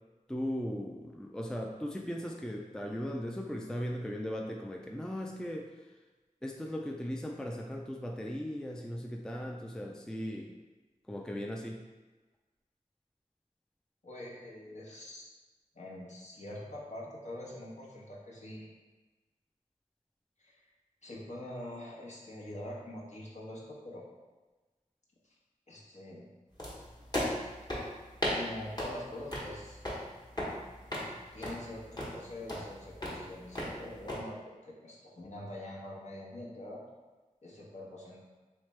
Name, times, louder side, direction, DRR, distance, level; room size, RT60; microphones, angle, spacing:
voice 1, 0.3-5.7 6.4-10.5 11.1-11.8, equal, 5° left, 1 dB, 0.3 m, -38 dB
voice 2, 14.0-15.3 15.7-18.7 20.4-20.6 21.0-24.0 25.7-26.3 28.3-29.8 31.3-34.4 34.6-36.8 37.4-38.2, left 1 dB, 55° left, -4 dB, 1.0 m, -44 dB
sound 1, 26.6-34.2, left 1 dB, 30° left, 1.2 m, -38 dB
3.3 x 3.1 x 3.2 m, 1.2 s
wide cardioid pair, 45°, 14 cm